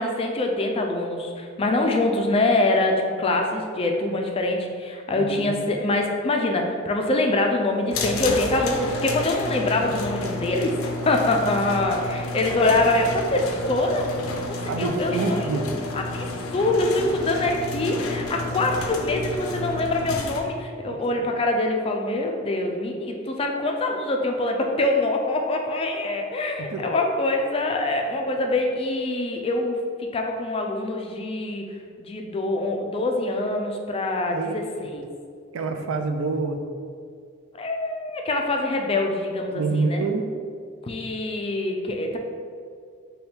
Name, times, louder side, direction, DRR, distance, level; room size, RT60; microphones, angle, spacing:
voice 1, 0.0-10.8 11.0-14.1 14.6-15.5 15.9-31.6 32.0-35.0 37.6-40.0 40.8-42.2, left 2 dB, 25° left, 2 dB, 0.3 m, -24 dB
voice 2, 5.1-5.6 14.7-15.7 20.9-21.0 26.7-26.8 34.3-34.9 35.5-36.6 39.5-40.3, right 3 dB, 75° right, 6 dB, 0.4 m, -27 dB
sound 1, 7.9-20.4, left 2 dB, 85° left, 0.5 m, -31 dB
3.4 x 2.3 x 4.2 m, 2.2 s
head